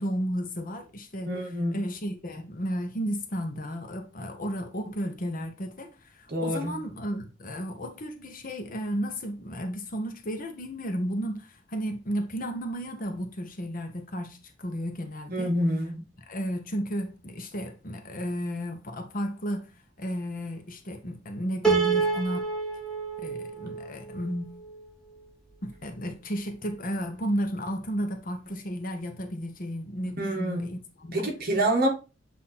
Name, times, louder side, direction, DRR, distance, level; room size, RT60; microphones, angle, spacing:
voice 1, 0.0-15.5 16.3-19.7 20.0-22.5 23.2-24.6 25.6-31.3, equal, 45° left, 1.1 m, -33 dB
voice 2, 1.3-1.8 6.3-6.8 15.3-16.0 30.2-30.7 31.1-31.9, right 1 dB, 50° right, 1.6 m, -27 dB
Piano, 21.6-24.9, right 5 dB, 5° left, 1.3 m, -28 dB
7.6 x 2.9 x 4.3 m
head